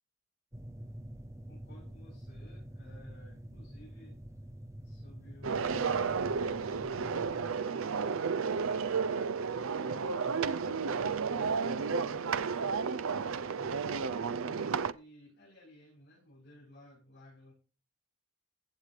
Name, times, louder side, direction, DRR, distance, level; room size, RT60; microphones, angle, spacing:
sound 1, 0.5-7.5, equal, 15° right, 0.7 m, -47 dB
voice 1, 1.5-4.2 4.8-17.5, left 1 dB, 50° left, -7 dB, 6.9 m, -57 dB
sound 2, 5.4-14.9, right 5 dB, 65° right, 0.5 m, -32 dB
15.5 x 8.2 x 3.3 m, 0.35 s
head